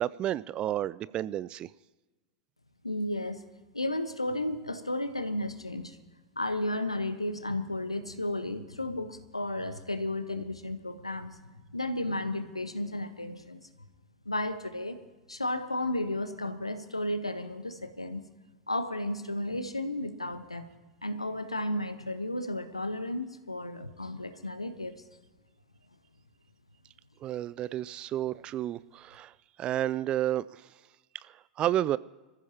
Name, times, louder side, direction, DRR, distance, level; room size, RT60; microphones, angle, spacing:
voice 1, 0.0-1.7 27.2-29.3 29.6-30.6 31.1-32.0, right 12 dB, 35° right, 0.4 m, -31 dB
voice 2, 2.8-3.4 3.7-6.0 6.4-13.7 14.2-15.0 15.3-18.2 18.7-20.7 21.0-24.9, left 1 dB, 85° left, 1.0 m, -33 dB
26.0 x 14.5 x 2.9 m
figure-of-eight pair, 85°, 3 cm